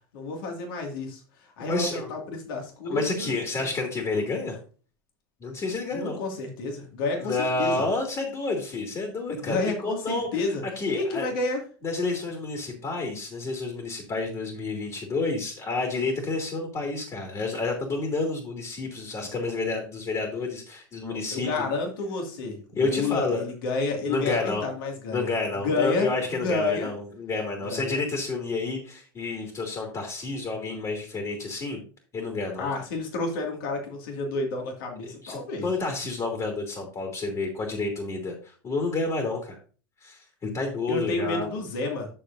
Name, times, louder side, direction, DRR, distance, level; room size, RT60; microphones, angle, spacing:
voice 1, 0.1-3.7 4.2-4.3 5.9-7.8 9.3-10.6 10.9-11.6 21.3-25.3 25.6-26.9 27.6-28.0 32.6-35.7 40.9-42.1, left 3 dB, 65° left, 2 dB, 2.3 m, -30 dB
voice 2, 1.6-2.1 2.9-4.6 5.4-6.2 7.2-11.3 11.8-21.6 22.8-23.4 24.1-24.6 25.1-31.8 32.1-32.7 35.0-39.6 40.0-41.5, left 3 dB, 30° left, 2 dB, 2.5 m, -30 dB
11.0 x 6.7 x 2.7 m, 0.38 s
hypercardioid pair, 90°, 12 cm